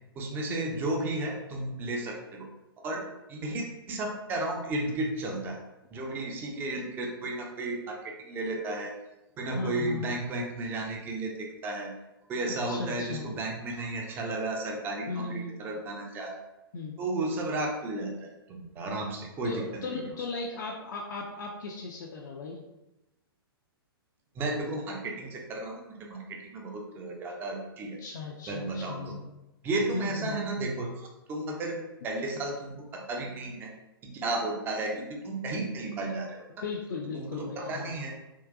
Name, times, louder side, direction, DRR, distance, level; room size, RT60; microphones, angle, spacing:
voice 1, 0.2-2.5 2.8-5.6 5.9-8.9 9.4-11.9 12.3-16.4 17.0-20.1 24.4-28.0 28.5-29.1 29.6-31.8 32.0-33.7 34.0-36.5 37.1-38.1, right 2 dB, 15° right, 0 dB, 0.4 m, -33 dB
voice 2, 9.5-10.1 12.6-13.3 15.1-15.6 16.7-16.9 19.4-22.6 28.0-29.3 29.9-30.4 36.6-38.1, left 3 dB, 50° left, -1 dB, 0.4 m, -37 dB
3.6 x 2.2 x 2.4 m, 0.96 s
figure-of-eight pair, 110°, 13 cm